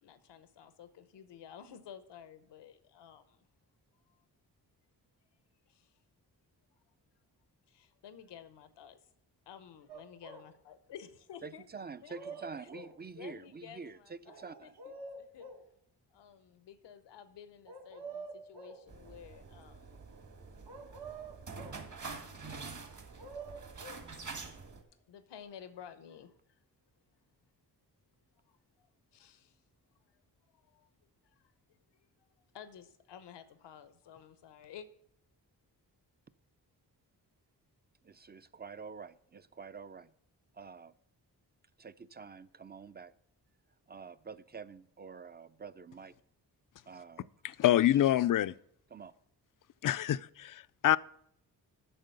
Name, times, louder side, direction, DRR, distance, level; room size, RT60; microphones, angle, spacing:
voice 1, 0.0-3.5 4.1-4.2 5.7-6.0 6.7-6.8 7.7-9.0 9.5-12.7 13.2-15.5 16.1-20.0 25.1-26.6 28.4-29.6 29.9-30.2 30.5-30.9 31.2-34.9, left 8 dB, 90° left, 0.9 m, -53 dB
sound 1, 9.9-10.5 11.8-13.0 14.3-15.7 17.7-18.9 20.7-21.9 22.9-24.1 25.4-25.5, right 3 dB, 70° right, 1.6 m, -47 dB
voice 2, 11.4-14.8 38.0-40.1 40.5-40.9 41.8-43.1 43.9-46.2 46.9-47.3 48.9-49.1, right 5 dB, 25° right, 0.4 m, -47 dB
sound 2, 18.9-24.8, right 4 dB, 45° right, 1.6 m, -46 dB
voice 3, 47.6-48.5 49.8-51.0, left 12 dB, 55° left, 0.4 m, -26 dB
8.9 x 6.2 x 6.8 m
cardioid pair, 60°, 41 cm